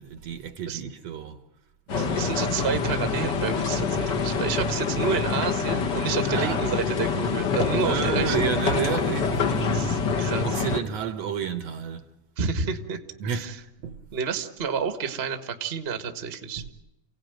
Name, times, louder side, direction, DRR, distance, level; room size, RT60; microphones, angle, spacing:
voice 1, 0.0-1.4 1.9-2.4 3.1-3.3 6.3-6.6 7.8-9.9 10.4-12.1 13.2-13.5 13.8-14.0 16.6-16.7, right 7 dB, 65° right, 2.0 m, -31 dB
sound 1, 1.9-10.8, left 5 dB, 50° left, 1.5 m, -26 dB
voice 2, 2.0-8.4 9.7-10.6 12.4-13.5 14.1-16.7, right 6 dB, 30° right, 1.1 m, -30 dB
29.5 x 17.5 x 9.2 m
omnidirectional pair, 3.7 m